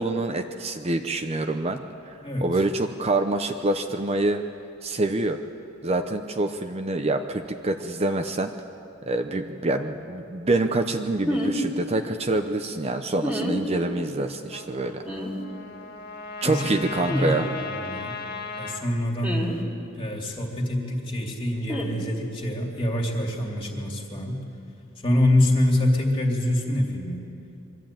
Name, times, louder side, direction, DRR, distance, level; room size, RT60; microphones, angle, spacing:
voice 1, 0.0-1.8 2.4-4.4 4.8-5.4 5.8-8.5 9.1-15.0 16.4-17.5, right 2 dB, 30° right, 6 dB, 0.7 m, -26 dB
voice 2, 2.2-2.5 16.4-16.7 17.0-18.2 18.6-19.5 20.0-24.4 25.0-27.2, left 1 dB, 25° left, 0 dB, 2.5 m, -25 dB
sound 1, 11.3-11.6 13.2-13.6 15.0-15.3 17.1-17.3 19.2-19.6 21.7-21.9, equal, 5° right, 2.3 m, -28 dB
Trumpet, 14.5-18.8, left 3 dB, 50° left, 2.0 m, -36 dB
23.0 x 13.5 x 9.0 m, 2.7 s
head